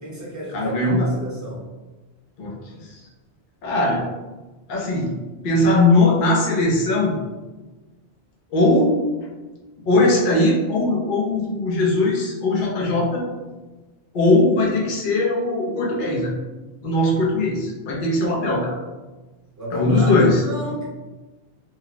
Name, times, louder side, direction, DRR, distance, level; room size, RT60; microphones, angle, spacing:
voice 1, 0.0-1.7 19.6-20.8, right 1 dB, 20° right, -6 dB, 0.8 m, -31 dB
voice 2, 0.5-1.1 2.4-2.6 3.6-4.0 4.7-5.2 5.4-7.2 8.5-8.9 9.9-13.3 14.1-16.3 16.8-18.8 19.7-20.4, left 2 dB, 55° left, -2 dB, 0.8 m, -19 dB
2.7 x 2.1 x 3.8 m, 1.2 s
omnidirectional pair, 1.1 m